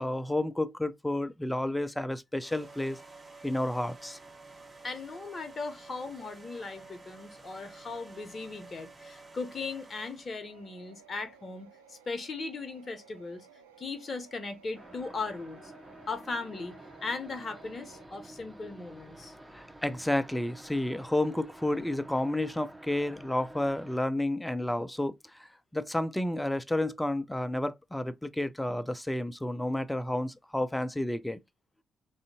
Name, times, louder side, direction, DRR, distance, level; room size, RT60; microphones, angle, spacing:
voice 1, 0.0-3.0 3.4-4.2 19.5-31.4, left 1 dB, 10° left, 0.5 m, -31 dB
sound 1, 2.4-10.5, right 3 dB, 30° right, 1.2 m, -51 dB
voice 2, 4.8-13.5 13.8-15.7 16.1-16.7 17.0-19.3, left 4 dB, 40° left, 0.7 m, -38 dB
sound 2, 10.4-18.1, right 6 dB, 85° right, 0.4 m, -57 dB
sound 3, 14.7-24.0, right 1 dB, 10° right, 0.8 m, -50 dB
3.4 x 2.6 x 2.7 m
hypercardioid pair, 40°, 0 cm